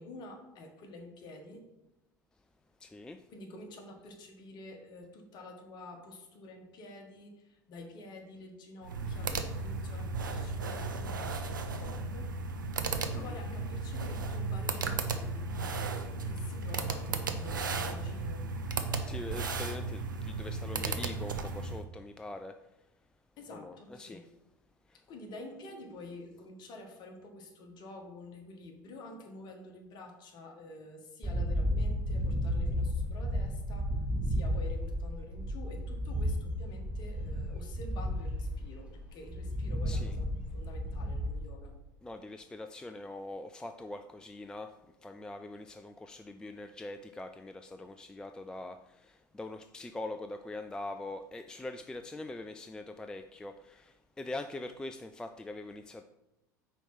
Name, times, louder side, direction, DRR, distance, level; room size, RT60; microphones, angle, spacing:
voice 1, 0.0-1.6 3.3-12.3 12.8-18.4 23.4-24.3 25.1-34.0 34.2-41.7, left 2 dB, 45° left, 2 dB, 1.5 m, -49 dB
voice 2, 2.8-3.2 13.1-13.3 19.1-22.6 23.5-24.2 24.9-25.0 39.9-40.2 42.0-44.7 45.0-56.0, left 2 dB, 5° left, 7 dB, 0.3 m, -43 dB
sound 1, 8.8-21.8, right 3 dB, 75° right, 0.6 m, -35 dB
sound 2, 31.2-41.4, equal, 10° right, 1.1 m, -33 dB
5.0 x 4.5 x 5.6 m, 0.93 s
figure-of-eight pair, 75°, 11 cm